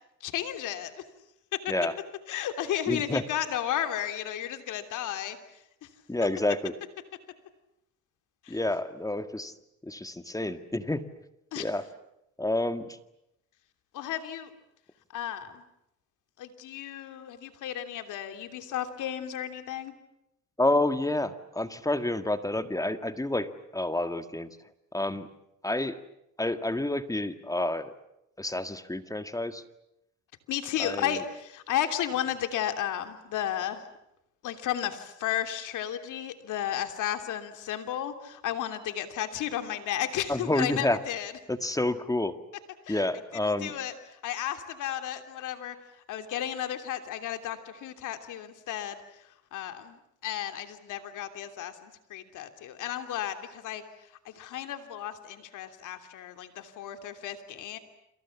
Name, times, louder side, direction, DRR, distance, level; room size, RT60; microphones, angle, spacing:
voice 1, 0.2-0.9 1.5-1.7 2.3-5.4 5.8-5.9 8.4-8.6 11.5-11.7 13.9-14.5 15.1-15.6 16.4-19.9 30.5-33.8 34.4-41.3 42.8-43.1 43.6-45.8 46.1-53.8 54.2-57.8, left 11 dB, 85° left, 8 dB, 3.0 m, -33 dB
voice 2, 2.9-3.2 6.1-6.7 8.5-9.5 9.8-11.0 11.6-11.8 12.4-13.0 20.6-24.6 24.9-25.3 25.6-26.0 26.4-27.9 28.4-29.6 30.8-31.2 40.3-41.0 41.5-42.4 42.9-43.7, left 1 dB, 10° left, 10 dB, 1.9 m, -29 dB
29.0 x 27.5 x 7.2 m, 0.82 s
cardioid pair, 90°, 30 cm